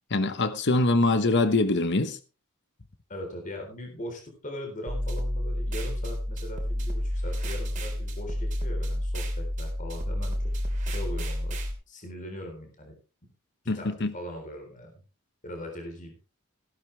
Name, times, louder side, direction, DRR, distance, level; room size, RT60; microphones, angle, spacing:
voice 1, 0.1-2.2 13.7-14.1, left 2 dB, 50° left, 1.0 m, -24 dB
voice 2, 3.1-10.4 10.9-11.6 11.9-12.9 13.7-15.0 15.4-16.1, left 1 dB, 35° left, 3.9 m, -40 dB
sound 1, 4.9-11.7, equal, 35° right, 2.9 m, -30 dB
15.5 x 12.0 x 3.4 m
head